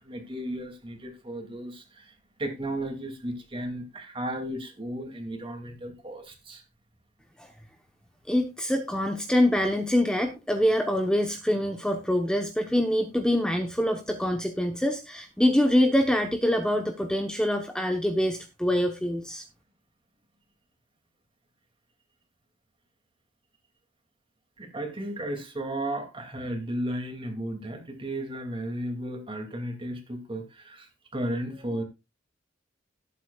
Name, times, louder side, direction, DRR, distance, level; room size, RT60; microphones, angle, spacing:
voice 1, 0.0-2.1 2.4-6.6 24.6-31.8, right 1 dB, 30° right, 5 dB, 2.5 m, -34 dB
voice 2, 8.3-19.4, left 1 dB, 5° left, 4 dB, 1.0 m, -25 dB
18.5 x 8.4 x 2.4 m, 0.25 s
head